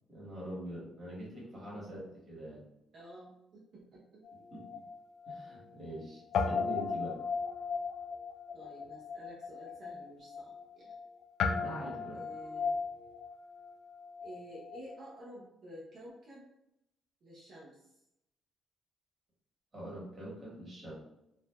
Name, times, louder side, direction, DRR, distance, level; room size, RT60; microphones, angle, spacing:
voice 1, 0.1-2.6 4.5-4.6 5.3-7.2 11.6-12.2 19.7-20.9, right 1 dB, 30° right, -6 dB, 1.5 m, -44 dB
voice 2, 1.5-2.0 2.9-4.2 5.6-5.7 8.5-10.9 12.1-12.8 14.2-16.4 17.2-17.9, equal, 60° right, -6 dB, 0.7 m, -51 dB
Guitar, 4.2-6.0 6.3-15.0, left 5 dB, 75° left, 0.3 m, -37 dB
2.7 x 2.5 x 2.2 m, 0.83 s
cardioid pair, 90°, 0 cm